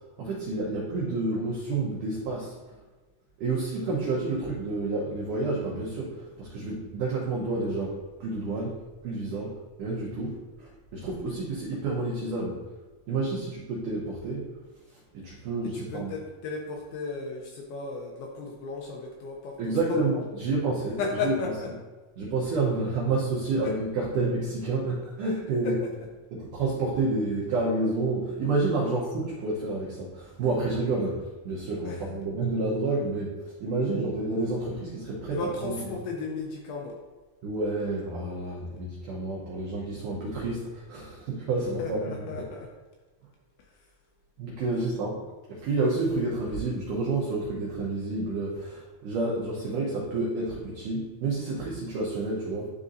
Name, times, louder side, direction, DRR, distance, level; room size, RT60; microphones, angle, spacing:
voice 1, 0.2-2.6 3.4-12.6 13.1-14.5 14.9-16.1 19.6-21.3 22.2-25.8 26.3-35.8 37.4-42.3 44.4-45.2 45.5-52.7, right 3 dB, 85° right, -5 dB, 1.8 m, -29 dB
voice 2, 15.7-20.2 21.0-21.5 23.0-23.1 25.6-25.8 31.9-32.0 35.3-37.0 41.6-42.7 43.6-43.7, left 4 dB, 80° left, 0 dB, 2.3 m, -34 dB
11.0 x 3.7 x 2.6 m, 1.3 s
omnidirectional pair, 5.0 m